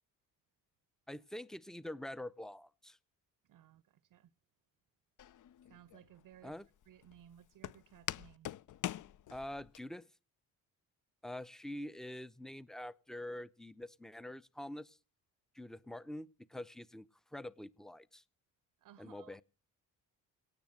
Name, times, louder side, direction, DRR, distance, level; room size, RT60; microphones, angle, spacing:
voice 1, 1.1-3.0 6.4-6.7 9.3-10.1 11.2-15.0 15.5-18.2 19.0-19.4, left 1 dB, ahead, 0.6 m, -46 dB
voice 2, 3.5-3.8 4.1-4.3 5.7-6.6 6.9-8.6 18.8-19.4, right 11 dB, 50° right, 0.7 m, -59 dB
Walk footsteps, 5.2-9.8, left 13 dB, 50° left, 0.6 m, -44 dB
17.5 x 7.2 x 7.5 m
supercardioid pair, 55°, 40 cm